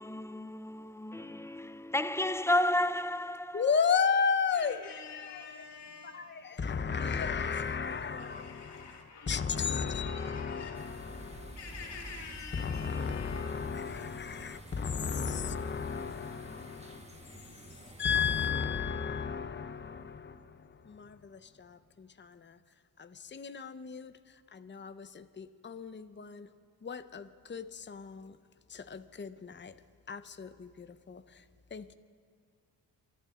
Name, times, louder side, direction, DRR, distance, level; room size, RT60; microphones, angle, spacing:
voice 1, 0.0-3.6, left 1 dB, 5° left, 0.4 m, -31 dB
voice 2, 3.5-5.4 6.1-8.9 9.3-11.6 12.5-17.5 18.0-22.6 23.0-24.1 24.5-26.5 26.8-28.4 28.7-29.7 30.1-31.4 31.7-31.9, left 6 dB, 25° left, 0.8 m, -34 dB
voice 3, 4.5-6.9 7.6-16.9 17.4-17.9, left 5 dB, 75° left, 2.6 m, -50 dB
sound 1, 10.7-18.5, right 1 dB, 15° right, 1.7 m, -50 dB
29.0 x 12.0 x 3.8 m
cardioid pair, 60°, 41 cm